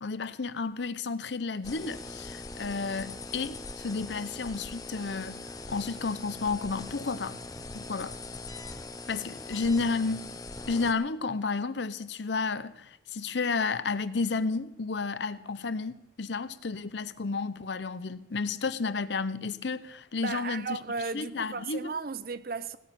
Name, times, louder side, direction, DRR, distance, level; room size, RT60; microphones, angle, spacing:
voice 1, 0.0-7.4 7.7-8.2 9.1-10.3 10.7-20.8 21.1-21.9, left 4 dB, 70° left, 0.7 m, -32 dB
sound 1, 1.6-10.9, left 2 dB, 20° left, 0.7 m, -41 dB
voice 2, 20.2-22.8, right 4 dB, 50° right, 0.6 m, -35 dB
17.5 x 6.5 x 9.0 m
head